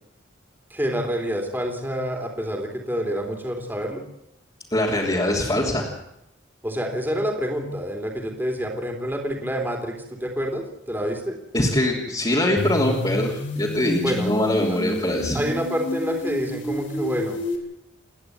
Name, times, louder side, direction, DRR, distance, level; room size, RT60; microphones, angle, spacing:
voice 1, 0.7-4.0 6.6-11.4 14.0-14.3 14.7-14.8 15.3-17.4, equal, 10° right, 2 dB, 3.5 m, -27 dB
voice 2, 4.7-5.8 11.5-15.4, left 1 dB, 25° left, -4 dB, 3.3 m, -23 dB
sound 1, 12.6-17.6, equal, 75° left, 3.6 m, -30 dB
29.0 x 10.5 x 9.5 m, 0.81 s
head